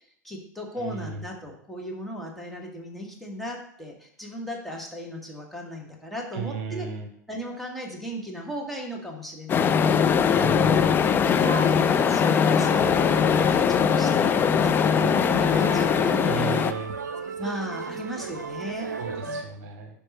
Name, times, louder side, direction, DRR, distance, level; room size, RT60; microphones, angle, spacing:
voice 1, 0.0-6.9 7.3-10.1 10.8-13.2 13.7-16.7 17.4-18.9 19.2-19.4, equal, ahead, -1 dB, 1.7 m, -37 dB
voice 2, 0.8-1.2 6.3-7.1 10.4-10.9 16.3-16.9 19.0-20.0, right 6 dB, 50° right, 5 dB, 1.1 m, -34 dB
sound 1, 9.5-16.7, left 7 dB, 20° left, 0.4 m, -21 dB
sound 2, 11.4-19.4, right 4 dB, 75° right, 0.6 m, -36 dB
10.5 x 3.7 x 4.4 m, 0.67 s
figure-of-eight pair, 85°, 10 cm